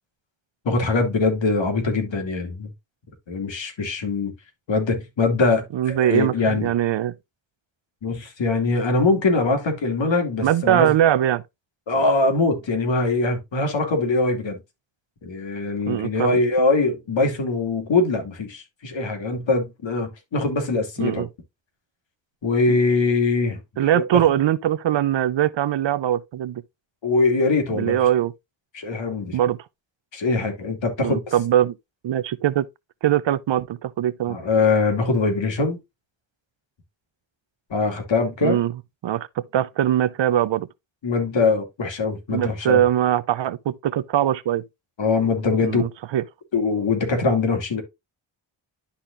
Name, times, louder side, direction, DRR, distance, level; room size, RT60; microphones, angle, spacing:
voice 1, 0.6-2.7 3.3-4.3 4.7-6.7 8.0-10.9 11.9-14.6 15.2-21.2 22.4-23.6 23.9-24.2 27.0-28.0 28.7-29.4 30.1-31.2 34.3-35.8 37.7-38.6 41.0-42.8 45.0-45.8 46.5-47.8, left 3 dB, 70° left, 2.6 m, -22 dB
voice 2, 5.7-7.1 10.4-11.4 15.9-16.4 21.0-21.3 22.7-22.8 23.8-26.6 27.7-28.3 29.3-29.6 31.0-31.7 32.0-32.7 33.0-34.4 38.4-38.7 39.0-40.7 42.3-44.6 45.6-46.2, right 11 dB, 65° right, 0.7 m, -21 dB
11.5 x 4.3 x 2.5 m
cardioid pair, 70°, 48 cm